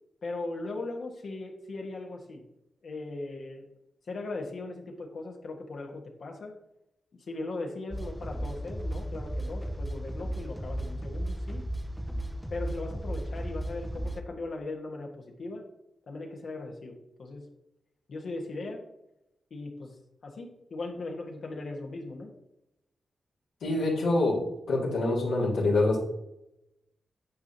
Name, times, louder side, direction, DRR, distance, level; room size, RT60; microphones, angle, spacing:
voice 1, 0.2-2.4 2.8-3.6 4.1-6.5 7.3-11.7 12.5-15.1 15.4-15.6 16.1-17.4 18.1-18.8 19.5-19.9 20.2-22.3, left 2 dB, 70° left, 1 dB, 1.4 m, -38 dB
sound 1, 7.9-14.2, right 1 dB, ahead, 0.8 m, -35 dB
voice 2, 23.6-26.0, left 2 dB, 85° left, -4 dB, 2.3 m, -26 dB
9.4 x 5.1 x 2.9 m, 0.84 s
supercardioid pair, 45°, 0 cm